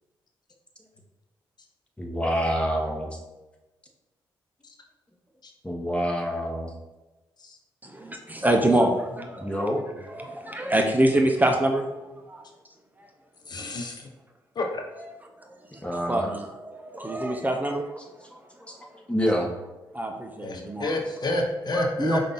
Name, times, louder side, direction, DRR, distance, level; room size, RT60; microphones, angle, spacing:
voice 1, 2.0-3.2 5.6-6.7 9.4-9.8 15.8-16.3 18.6-19.6, equal, 10° left, 1 dB, 1.1 m, -27 dB
voice 2, 7.8-9.7 10.1-12.4 15.8-17.9 19.9-20.9 21.7-22.3, right 1 dB, 20° right, 3 dB, 0.6 m, -25 dB
voice 3, 13.5-14.1 14.6-14.8 20.4-22.3, left 1 dB, 50° left, 2 dB, 0.7 m, -29 dB
5.3 x 2.6 x 3.9 m, 1.1 s
supercardioid pair, 55°, 9 cm